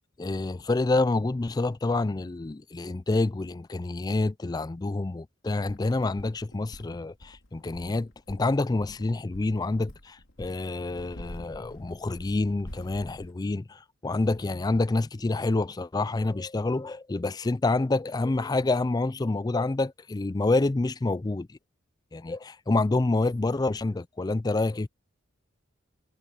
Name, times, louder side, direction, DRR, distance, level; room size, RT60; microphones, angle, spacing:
voice 1, 0.2-21.6 22.1-24.9, left 2 dB, 20° left, 0.4 m, -27 dB
sound 1, 5.7-13.3, left 1 dB, 80° left, 2.9 m, -47 dB
head